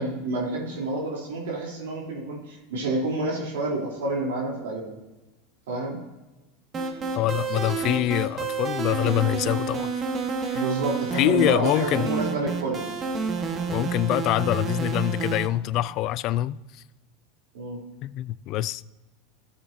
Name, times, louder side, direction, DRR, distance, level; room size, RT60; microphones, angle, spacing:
voice 1, 0.0-4.9 5.7-6.0 10.5-12.8 17.5-17.8, right 2 dB, 85° right, 3.3 m, -28 dB
sound 1, 6.7-15.5, right 4 dB, 30° right, 1.4 m, -30 dB
voice 2, 7.2-9.9 10.5-10.6 11.1-12.1 13.7-16.6 18.0-18.8, left 14 dB, 50° left, 0.3 m, -25 dB
13.5 x 7.8 x 2.7 m
supercardioid pair, 110°, 0 cm